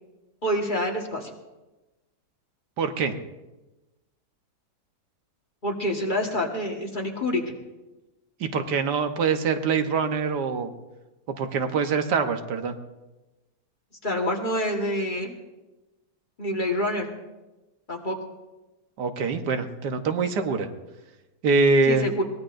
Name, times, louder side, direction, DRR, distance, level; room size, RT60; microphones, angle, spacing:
voice 1, 0.4-1.3 5.6-7.4 14.0-15.4 16.4-17.1 17.9-18.1 21.9-22.2, left 1 dB, 30° left, 1 dB, 1.6 m, -27 dB
voice 2, 2.8-3.1 8.4-10.7 11.3-12.7 19.0-20.7 21.4-22.1, right 4 dB, 80° right, 7 dB, 1.6 m, -24 dB
22.5 x 18.5 x 2.6 m, 1.1 s
omnidirectional pair, 1.8 m